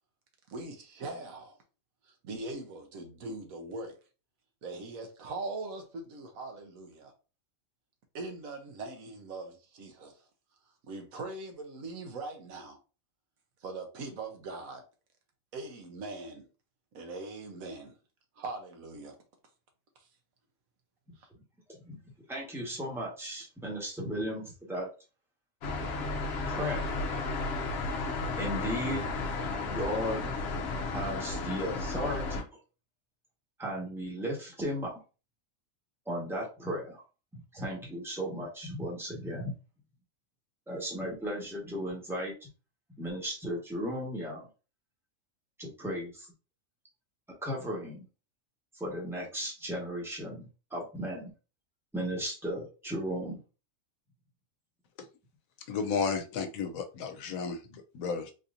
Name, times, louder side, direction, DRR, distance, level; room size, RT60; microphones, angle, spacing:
voice 1, 0.5-1.6 2.0-4.0 4.6-7.1 8.1-10.3 10.8-12.8 13.6-14.8 15.5-16.5 16.9-18.0 18.4-19.2 21.2-21.3, right 3 dB, 80° right, 1.3 m, -41 dB
voice 2, 22.3-24.9 26.5-26.9 28.4-29.1 29.6-30.3 30.9-32.4 33.6-35.0 36.1-37.0 37.5-39.5 40.7-42.5 43.0-44.5 45.6-46.3 47.4-48.1 48.7-51.3 51.9-53.4, equal, ahead, 1.1 m, -35 dB
sound 1, 25.6-32.4, left 3 dB, 60° left, 0.8 m, -33 dB
voice 3, 55.7-58.3, left 5 dB, 85° left, 1.1 m, -33 dB
3.8 x 2.8 x 2.5 m
omnidirectional pair, 1.4 m